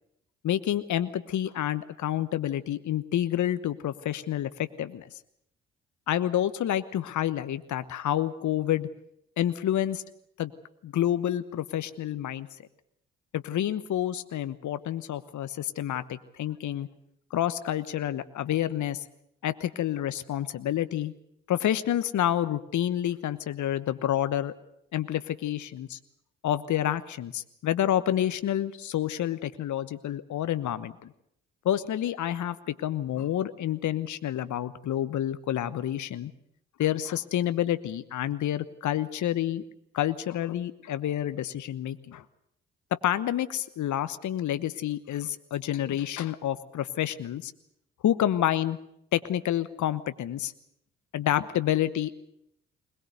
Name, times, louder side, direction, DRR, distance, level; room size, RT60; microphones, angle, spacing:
voice 1, 0.4-5.2 6.1-8.9 9.4-10.0 10.4-10.5 10.8-12.5 13.3-16.9 17.3-19.0 19.4-21.1 21.5-24.5 24.9-26.0 26.4-31.1 31.6-36.3 36.8-39.6 39.9-42.2 42.9-47.5 48.0-48.8 49.1-50.5 51.1-52.1, left 11 dB, 60° left, 13 dB, 1.1 m, -28 dB
21.5 x 19.5 x 8.0 m, 0.75 s
hypercardioid pair, 50°, 34 cm